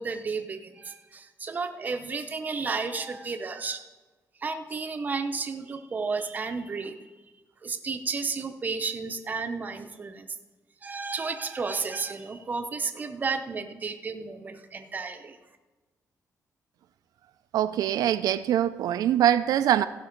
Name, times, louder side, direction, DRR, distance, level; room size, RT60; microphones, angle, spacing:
voice 1, 0.0-3.8 4.4-7.1 7.6-10.3 10.8-15.4, right 4 dB, 25° right, 6 dB, 0.6 m, -32 dB
voice 2, 17.5-19.8, right 11 dB, 90° right, 11 dB, 0.4 m, -23 dB
15.5 x 5.8 x 5.2 m, 1.2 s
wide cardioid pair, 165°, 6 cm